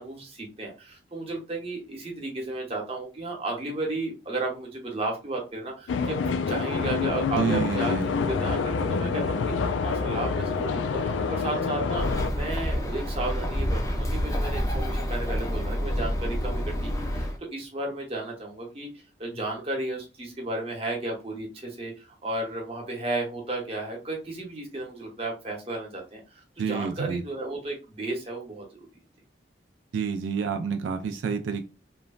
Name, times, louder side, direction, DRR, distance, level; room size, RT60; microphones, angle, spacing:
voice 1, 0.0-6.2 6.5-8.0 8.2-18.9 19.2-28.9, right 2 dB, 30° right, 0 dB, 0.9 m, -33 dB
sound 1, 5.9-12.3, left 5 dB, 85° left, 0.3 m, -27 dB
voice 2, 7.4-8.1 26.6-27.2 29.9-31.6, right 5 dB, 90° right, 6 dB, 0.3 m, -28 dB
Bird, 11.9-17.4, equal, 20° left, 0.4 m, -28 dB
3.0 x 2.2 x 2.4 m, 0.30 s
head